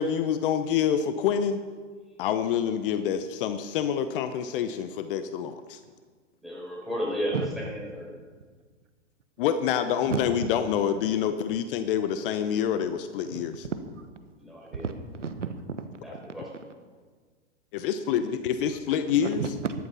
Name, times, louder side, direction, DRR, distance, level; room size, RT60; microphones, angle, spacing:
voice 1, 0.0-1.6 2.2-5.8 9.4-13.7 17.7-19.4, left 8 dB, 45° left, 10 dB, 0.9 m, -27 dB
voice 2, 6.4-8.2 14.4-14.9 16.0-16.5, equal, ahead, -5 dB, 5.3 m, -33 dB
voice 3, 14.7-15.9 19.2-19.7, right 6 dB, 90° right, 9 dB, 1.3 m, -32 dB
14.0 x 11.5 x 5.6 m, 1.5 s
hypercardioid pair, 115°, 36 cm